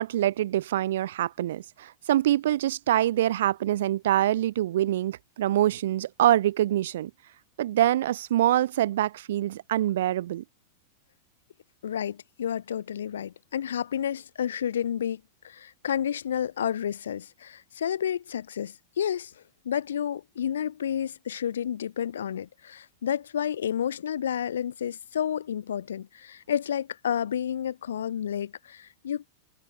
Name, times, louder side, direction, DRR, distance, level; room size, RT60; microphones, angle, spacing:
voice 1, 0.0-7.1 7.6-10.4, right 13 dB, 60° right, 1.1 m, -25 dB
voice 2, 11.8-19.3 19.6-29.3, left 9 dB, 65° left, 5.0 m, -30 dB
figure-of-eight pair, 90°, 0 cm